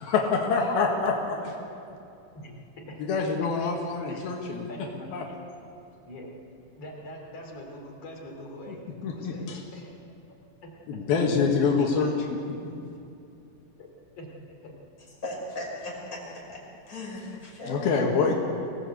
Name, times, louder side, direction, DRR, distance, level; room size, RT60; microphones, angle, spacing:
voice 1, 0.0-1.6 3.0-4.7 5.1-5.3 8.7-9.6 10.9-12.1 12.6-12.7 17.7-18.3, left 5 dB, 80° left, 0 dB, 3.7 m, -26 dB
voice 2, 2.3-3.5 3.8-4.3 4.7-5.1 6.0-6.3 6.8-9.9 10.6-11.3 12.0-12.3 13.7-13.9 14.2-14.7, left 1 dB, 45° left, -1 dB, 4.5 m, -44 dB
voice 3, 15.2-16.2 16.5-18.2, left 1 dB, 20° left, -3 dB, 5.6 m, -37 dB
24.5 x 17.5 x 8.3 m, 2.6 s
omnidirectional pair, 4.2 m